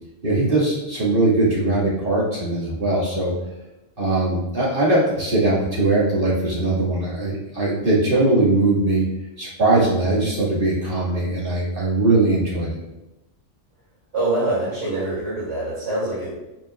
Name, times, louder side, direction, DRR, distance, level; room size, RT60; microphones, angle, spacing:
voice 1, 0.2-3.3 4.0-9.1 9.4-12.8, right 2 dB, 50° right, -7 dB, 2.3 m, -20 dB
voice 2, 14.1-16.3, right 2 dB, 85° right, -10 dB, 3.0 m, -24 dB
8.8 x 5.8 x 2.4 m, 1.0 s
omnidirectional pair, 1.2 m